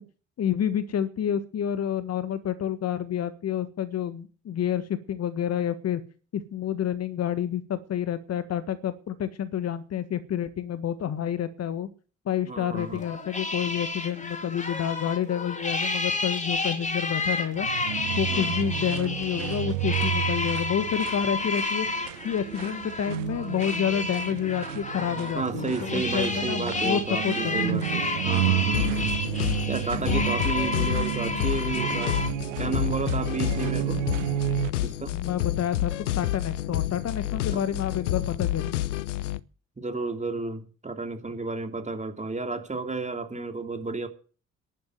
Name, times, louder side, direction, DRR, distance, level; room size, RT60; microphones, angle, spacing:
voice 1, 0.4-6.0 6.3-11.9 12.2-17.7 18.2-21.9 22.2-27.9 30.7-31.0 35.1-38.8, left 9 dB, 40° left, 1.6 m, -29 dB
voice 2, 12.5-13.0 18.3-18.5 25.3-29.2 29.7-32.2 32.6-34.0 34.8-35.1 37.5-37.6 39.8-44.1, right 3 dB, 20° right, 2.9 m, -32 dB
sound 1, 12.8-32.3, left 3 dB, 20° left, 3.1 m, -31 dB
sound 2, 17.5-34.7, right 16 dB, 75° right, 0.6 m, -31 dB
sound 3, 28.7-39.4, left 14 dB, 75° left, 0.7 m, -29 dB
11.5 x 10.5 x 7.8 m
figure-of-eight pair, 50°, 37 cm